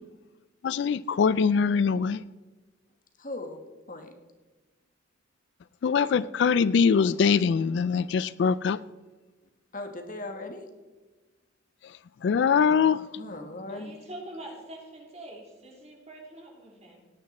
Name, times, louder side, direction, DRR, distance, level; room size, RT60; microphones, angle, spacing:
voice 1, 0.6-2.2 5.8-8.8 12.2-13.1, left 6 dB, 60° left, 18 dB, 0.3 m, -23 dB
voice 2, 3.2-3.6 3.9-4.1 9.7-10.7 13.2-14.0, left 2 dB, 45° left, 5 dB, 1.4 m, -38 dB
voice 3, 13.7-17.1, right 1 dB, 35° right, -1 dB, 3.1 m, -44 dB
17.0 x 9.8 x 4.2 m, 1.2 s
head